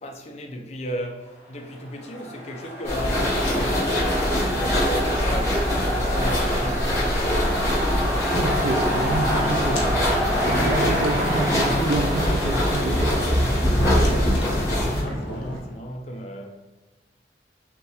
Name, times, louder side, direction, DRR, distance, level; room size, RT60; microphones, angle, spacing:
voice 1, 0.0-7.1 13.8-16.6, equal, 35° left, 0.5 m, -35 dB
sound 1, 1.6-15.4, equal, 10° right, 1.1 m, -30 dB
sound 2, 2.8-15.0, equal, 15° left, 1.3 m, -23 dB
sound 3, 8.3-15.6, left 1 dB, 85° left, 0.8 m, -32 dB
voice 2, 8.3-10.1 10.4-13.2, right 2 dB, 45° right, 0.3 m, -28 dB
5.7 x 2.3 x 3.0 m
head